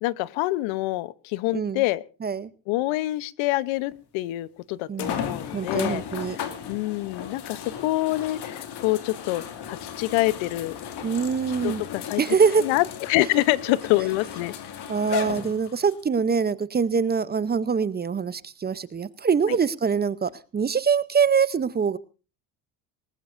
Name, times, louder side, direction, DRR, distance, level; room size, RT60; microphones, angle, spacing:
voice 1, 0.0-2.0 2.7-6.0 6.7-10.8 11.6-12.2 12.6-14.5 19.5-19.6, left 18 dB, 80° left, 19 dB, 0.9 m, -26 dB
sound 1, 3.9-4.0 5.0-16.0 16.7-16.8 20.3-20.4, left 8 dB, 55° left, 2.4 m, -35 dB
voice 2, 4.9-5.3 5.5-6.4 11.0-11.8 12.2-12.7 14.9-22.0, right 6 dB, 20° right, 17 dB, 0.6 m, -24 dB
20.0 x 19.0 x 2.6 m, 0.33 s
cardioid pair, 115°, 46 cm